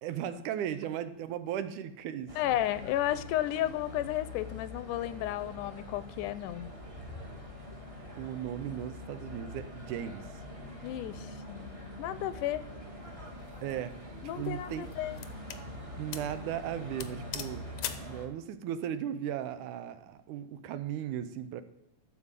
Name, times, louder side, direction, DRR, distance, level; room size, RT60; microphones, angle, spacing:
voice 1, 0.0-2.6 8.2-10.3 13.6-14.0 14.4-14.9 16.0-17.7 18.0-21.6, right 10 dB, 80° right, 11 dB, 2.3 m, -36 dB
sound 1, 2.3-18.3, left 1 dB, 15° right, 1.2 m, -44 dB
voice 2, 2.4-6.7 10.6-11.6 12.0-12.7 14.2-15.2, left 13 dB, 85° left, 15 dB, 2.2 m, -33 dB
sound 2, 13.4-13.7 14.4-15.7 16.1-16.4 16.6-16.7 17.0-18.1, left 10 dB, 70° left, 1.5 m, -40 dB
13.0 x 4.9 x 8.1 m, 0.81 s
omnidirectional pair, 3.6 m